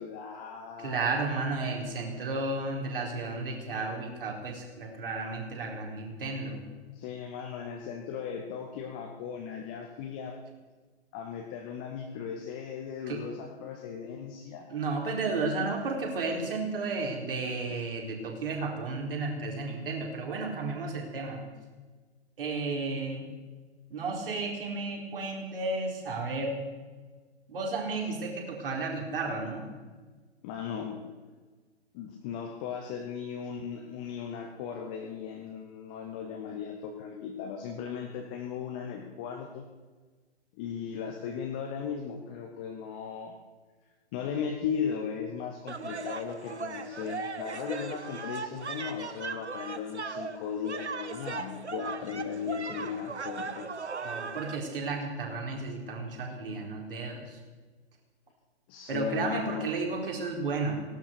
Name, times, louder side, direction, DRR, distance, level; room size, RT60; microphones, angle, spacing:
voice 1, 0.0-1.0 6.9-10.4 11.1-14.7 30.4-31.2 31.9-39.6 40.6-43.4 44.1-53.7 58.7-59.7, left 7 dB, 10° left, 2 dB, 0.4 m, -37 dB
voice 2, 0.8-6.6 13.1-13.2 14.7-21.4 22.4-23.2 23.9-26.6 27.5-29.6 54.0-57.4 58.9-60.7, right 3 dB, 50° right, 0 dB, 4.3 m, -33 dB
sound 1, 45.7-54.5, right 4 dB, 75° right, 1.3 m, -38 dB
17.0 x 12.0 x 6.7 m, 1.4 s
figure-of-eight pair, 125°, 34 cm